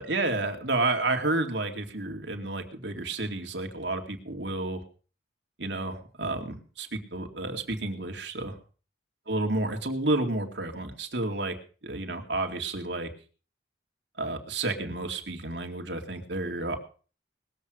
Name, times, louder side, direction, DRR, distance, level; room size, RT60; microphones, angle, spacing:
voice 1, 0.0-4.8 5.6-8.6 9.3-11.5 11.8-13.1 14.2-16.8, right 2 dB, 70° right, 4 dB, 2.3 m, -30 dB
20.0 x 7.6 x 6.4 m, 0.39 s
head